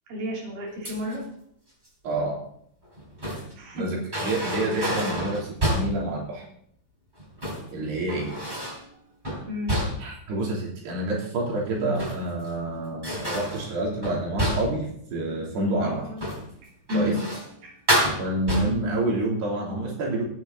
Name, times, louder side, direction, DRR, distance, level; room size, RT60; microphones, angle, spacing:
voice 1, 0.1-1.2 3.3-3.8 4.7-5.1 9.5-9.8 15.8-16.2 16.9-17.2 17.6-17.7, equal, 55° right, -3 dB, 4.8 m, -32 dB
sound 1, 0.8-1.3 2.8-3.6 4.1-6.1 7.2-7.7 8.1-8.9 9.2-10.2 11.7-12.5 13.0-14.9 16.1-16.5 16.9-17.5 17.9-19.0, equal, 10° right, 3.4 m, -29 dB
voice 2, 2.0-2.4 3.8-6.5 7.7-8.4 10.0-16.1 16.9-17.2 18.2-20.2, right 2 dB, 80° right, -3 dB, 5.3 m, -28 dB
16.0 x 9.6 x 4.0 m, 0.65 s
omnidirectional pair, 4.6 m